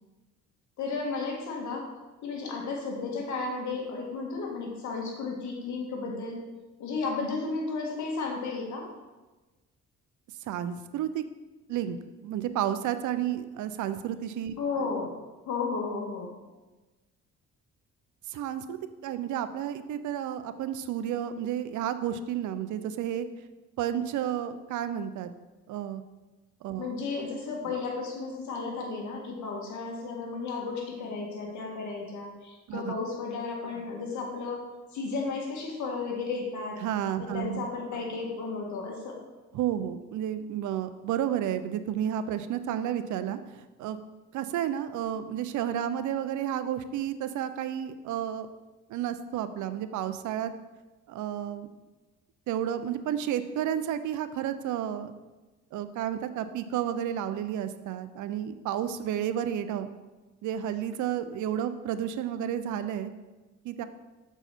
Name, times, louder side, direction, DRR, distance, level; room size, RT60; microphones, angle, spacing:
voice 1, 0.8-1.9 2.2-6.4 6.8-8.9 14.6-15.2 15.5-16.4 26.8-34.7 34.9-36.8 37.2-39.2, left 4 dB, 70° left, -1 dB, 1.7 m, -33 dB
voice 2, 10.5-11.2 11.7-14.5 18.3-23.3 23.8-25.3 25.7-26.0 26.6-26.9 32.7-32.9 36.8-37.7 39.5-44.0 44.3-48.5 48.9-50.5 51.1-51.7 52.5-55.1 55.7-59.9 60.4-63.1 63.6-63.8, right 10 dB, 75° right, 11 dB, 0.5 m, -31 dB
6.7 x 4.7 x 4.3 m, 1.2 s
cardioid pair, 90°, 30 cm